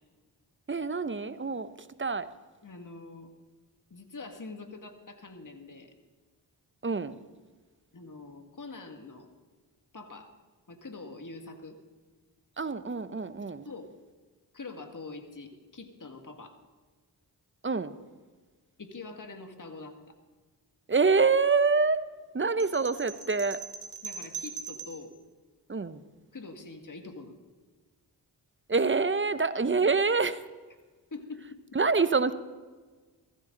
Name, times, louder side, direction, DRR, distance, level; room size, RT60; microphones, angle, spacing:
voice 1, 0.7-2.3 6.8-7.2 12.6-13.7 17.6-18.0 20.9-22.1 22.3-23.6 25.7-26.0 28.7-30.5 31.7-32.3, right 4 dB, 30° right, 13 dB, 0.8 m, -26 dB
voice 2, 2.6-3.3 3.9-5.9 7.9-9.3 9.9-10.3 10.7-11.8 13.6-13.9 14.5-16.6 18.8-20.1 24.0-25.2 26.3-27.4 31.1-31.4, left 3 dB, 45° left, 4 dB, 2.0 m, -44 dB
sound 1, 22.6-25.1, right 5 dB, 80° right, 1.8 m, -41 dB
15.0 x 14.5 x 3.9 m, 1.4 s
cardioid pair, 40°, 42 cm